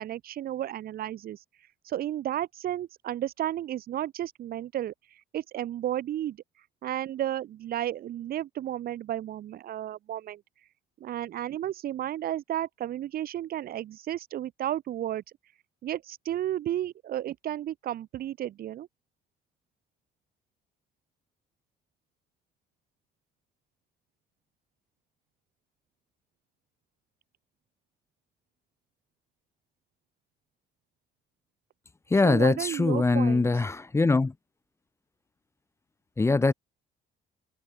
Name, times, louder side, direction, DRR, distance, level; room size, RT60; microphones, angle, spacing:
voice 1, 0.0-1.4 1.8-6.4 6.8-10.4 11.0-15.2 15.8-18.9 32.2-33.5, right 12 dB, 60° right, 2.2 m, -33 dB
voice 2, 32.1-34.3 36.2-36.5, left 3 dB, 15° left, 1.0 m, -22 dB
cardioid pair, 110°, 17 cm